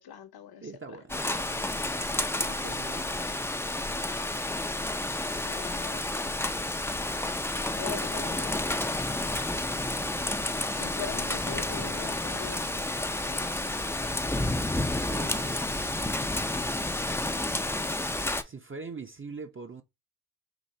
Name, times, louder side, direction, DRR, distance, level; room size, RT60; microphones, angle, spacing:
voice 1, 0.0-1.0 5.4-6.1 7.7-8.8 10.7-12.7 13.2-13.5, left 7 dB, 60° left, 0.8 m, -42 dB
voice 2, 0.6-3.1 15.0-15.8 18.4-19.8, right 4 dB, 30° right, 0.7 m, -43 dB
Rain, 1.1-18.4, left 2 dB, 5° left, 0.4 m, -30 dB
4.1 x 2.7 x 3.2 m
cardioid pair, 55°, 43 cm